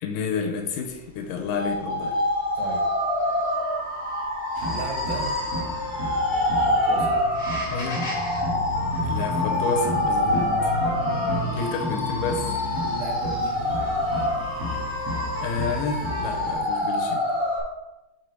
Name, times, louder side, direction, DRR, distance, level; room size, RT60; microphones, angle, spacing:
voice 1, 0.0-2.1 7.7-8.1 9.0-10.7 11.5-12.5 15.4-17.2, left 4 dB, 80° left, 3 dB, 2.4 m, -30 dB
sound 1, 1.5-17.6, left 1 dB, 60° left, 0.9 m, -26 dB
voice 2, 2.6-2.9 4.7-5.6 6.6-7.1 12.8-13.8, right 4 dB, 85° right, 1 dB, 3.0 m, -36 dB
sound 2, 4.5-16.5, left 1 dB, 35° right, 1.0 m, -32 dB
6.0 x 4.8 x 4.5 m, 0.99 s
omnidirectional pair, 3.9 m